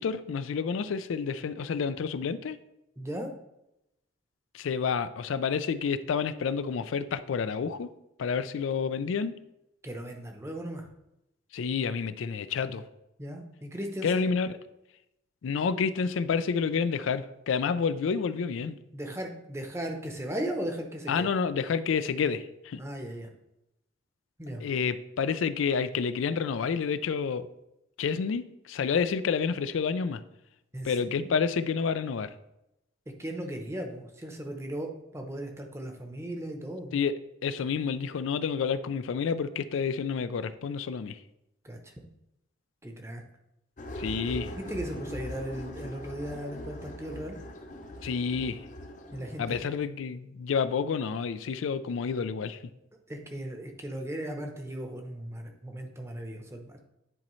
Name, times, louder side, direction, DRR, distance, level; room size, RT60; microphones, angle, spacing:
voice 1, 0.0-2.6 4.5-7.9 8.2-9.3 11.5-12.8 14.0-14.6 15.4-18.8 21.1-22.8 24.6-27.5 28.0-30.2 30.8-32.3 36.9-37.2 37.4-41.2 44.0-44.5 48.0-48.6 49.4-52.6, left 6 dB, 85° left, 13 dB, 0.4 m, -29 dB
voice 2, 3.0-3.3 9.8-10.9 13.2-14.2 18.9-21.3 22.8-23.3 24.4-24.6 30.7-31.3 33.2-37.0 41.6-41.9 42.8-43.2 44.5-47.4 49.1-49.6 53.1-56.8, right 1 dB, 15° right, 3 dB, 0.7 m, -37 dB
sound 1, 43.8-49.6, left 1 dB, 40° left, 0.6 m, -41 dB
9.9 x 4.2 x 3.1 m, 0.87 s
head